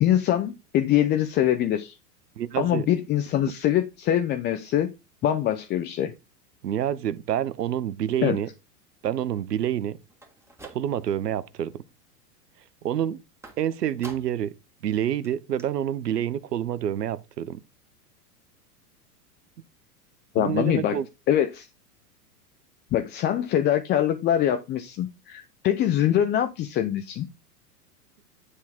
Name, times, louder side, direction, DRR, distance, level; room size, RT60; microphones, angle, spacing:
voice 1, 0.0-2.0 2.6-4.9 5.2-6.1 8.2-8.4 20.3-21.0 21.3-21.7 22.9-27.3, left 11 dB, 25° left, 0.5 m, -23 dB
voice 2, 2.4-2.9 6.6-8.5 9.0-10.0 10.6-11.8 12.8-13.2 13.6-14.5 14.8-17.6 20.4-21.1, right 10 dB, 85° right, 0.8 m, -27 dB
sound 1, 10.1-11.3 11.7-12.2 13.4-14.5 14.9-15.0 15.2-15.3 15.6-15.7, right 2 dB, 5° right, 1.8 m, -48 dB
9.8 x 3.7 x 4.3 m
hypercardioid pair, 110°, 47 cm